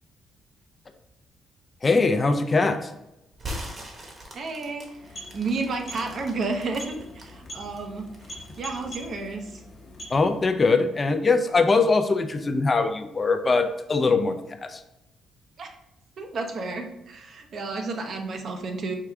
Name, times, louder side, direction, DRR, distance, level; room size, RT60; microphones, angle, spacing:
voice 1, 1.8-2.9 10.1-14.4 14.7-14.8, left 3 dB, 30° left, 7 dB, 0.4 m, -22 dB
sound 1, 3.3-7.3 7.8-9.1, equal, 35° right, 1.1 m, -40 dB
voice 2, 4.3-8.1 8.6-9.6 15.6-15.8 16.2-19.0, right 3 dB, 55° right, 4 dB, 0.7 m, -32 dB
sound 2, 4.8-10.6, equal, 50° left, 0.9 m, -43 dB
4.7 x 2.3 x 3.5 m, 0.86 s
cardioid pair, 90°, 0 cm